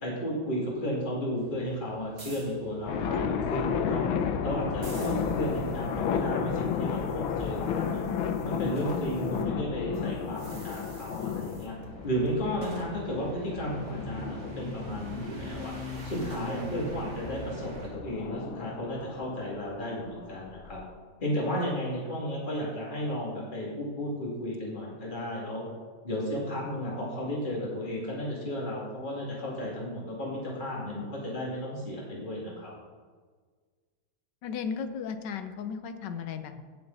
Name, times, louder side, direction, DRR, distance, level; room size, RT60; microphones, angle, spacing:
voice 1, 0.0-4.1 4.4-8.0 8.4-11.7 12.0-15.7 16.0-20.8 21.2-25.6 26.0-32.7, equal, 25° left, -4 dB, 2.7 m, -33 dB
sound 1, 1.4-9.4 9.7-17.9, right 1 dB, 50° right, 2.5 m, -44 dB
sound 2, 2.9-15.8 17.3-20.8, left 7 dB, 85° left, 1.6 m, -33 dB
voice 2, 34.4-36.6, left 6 dB, 65° left, 9 dB, 1.3 m, -35 dB
17.0 x 6.9 x 4.1 m, 1.5 s
omnidirectional pair, 2.2 m